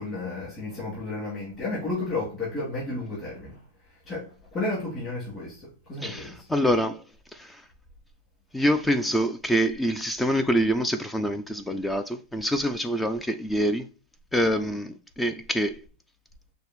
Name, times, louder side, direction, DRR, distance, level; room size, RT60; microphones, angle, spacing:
voice 1, 0.0-3.6 4.1-6.5, left 2 dB, 25° left, 2.6 m, -32 dB
voice 2, 6.0-7.0 7.3-7.6 8.5-13.9 14.3-15.8, equal, 5° left, 0.3 m, -25 dB
6.6 x 2.5 x 3.1 m
supercardioid pair, 145°, 0 cm